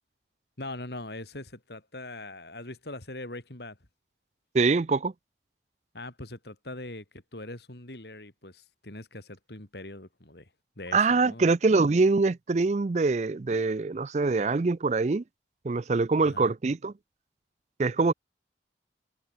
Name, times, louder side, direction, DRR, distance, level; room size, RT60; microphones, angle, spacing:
voice 1, 0.6-3.8 5.9-10.5 10.8-11.5 16.2-16.5, left 2 dB, 70° left, 3.7 m, -41 dB
voice 2, 4.5-5.1 10.9-15.2 15.6-16.9 17.8-18.1, right 3 dB, 40° right, 0.4 m, -24 dB
head